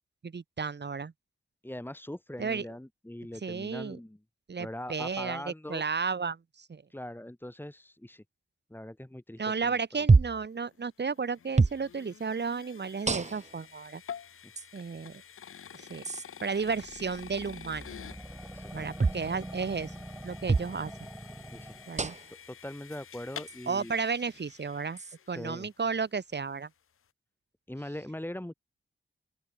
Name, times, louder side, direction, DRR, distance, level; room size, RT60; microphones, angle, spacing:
voice 1, 0.2-1.1 2.4-2.7 3.4-4.0 4.5-6.8 9.4-14.0 14.7-15.2 15.7-16.0 16.4-17.9 18.7-19.9 20.2-20.9 21.9-22.2 23.7-25.0 25.3-26.7, right 5 dB, 55° right, 1.9 m, -33 dB
voice 2, 1.6-4.2 4.6-5.8 6.9-8.2 8.7-9.8 14.4-14.5 18.5-18.9 21.5-21.8 22.5-24.0 25.3-25.7 27.7-28.5, left 1 dB, 10° left, 3.7 m, -41 dB
sound 1, 10.1-10.5 11.6-11.8 13.1-13.6 14.6-14.7 16.0-16.2 19.0-19.3 20.5-20.7 22.0-22.4 23.5-23.6 25.0-25.2, right 4 dB, 35° right, 1.0 m, -25 dB
sound 2, 10.6-25.8, left 8 dB, 85° left, 1.4 m, -49 dB
sound 3, 16.5-22.2, right 1 dB, 10° right, 3.0 m, -45 dB
open air
cardioid pair, 50°, 21 cm